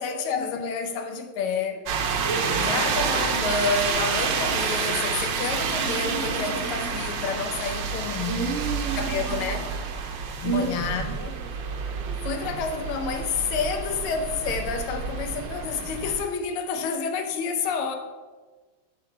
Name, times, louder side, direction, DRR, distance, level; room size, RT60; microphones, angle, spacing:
voice 1, 0.0-1.9 2.6-8.6 8.9-9.7 10.4-11.4 12.2-18.0, left 5 dB, 80° left, 1.6 m, -29 dB
sound 1, 1.9-16.2, right 5 dB, 65° right, 1.3 m, -29 dB
voice 2, 2.2-2.7 8.3-9.5 10.4-11.1, right 4 dB, 40° right, 1.9 m, -31 dB
5.7 x 5.2 x 5.7 m
omnidirectional pair, 2.4 m